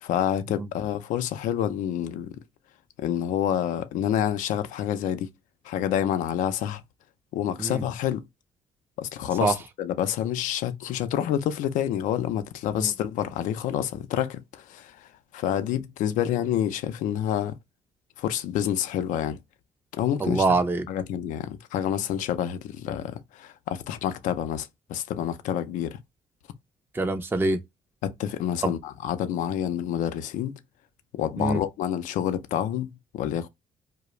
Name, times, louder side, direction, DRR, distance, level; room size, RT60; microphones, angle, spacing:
voice 1, 0.0-2.4 3.0-5.3 5.6-6.8 7.3-8.2 9.0-17.6 18.2-19.4 19.9-20.5 20.9-26.0 28.0-30.5 31.1-33.5, left 10 dB, 75° left, 0.4 m, -28 dB
voice 2, 20.2-20.8 26.9-27.6 28.6-28.7 31.4-31.6, right 3 dB, 15° right, 0.5 m, -24 dB
2.3 x 2.0 x 2.9 m
supercardioid pair, 65°, 13 cm